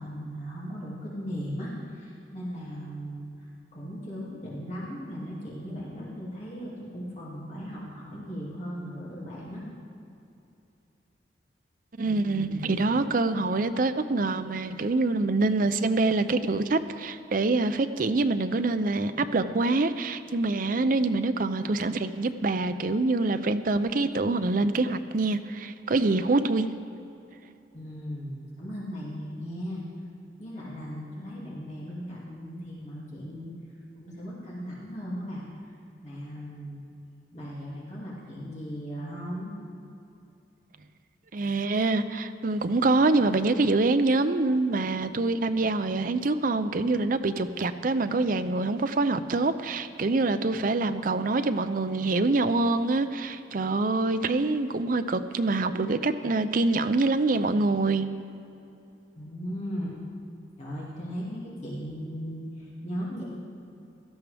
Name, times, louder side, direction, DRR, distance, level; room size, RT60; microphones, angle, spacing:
voice 1, 0.0-3.3 3.7-9.6 12.1-12.7 27.7-29.8 30.4-33.5 34.0-35.4 36.0-36.8 37.3-39.5 59.2-60.0 60.6-63.2, equal, 40° left, -6 dB, 2.4 m, -37 dB
voice 2, 12.0-26.7 41.3-58.1, right 3 dB, 50° right, 10 dB, 0.5 m, -25 dB
17.0 x 13.0 x 3.4 m, 2.8 s
head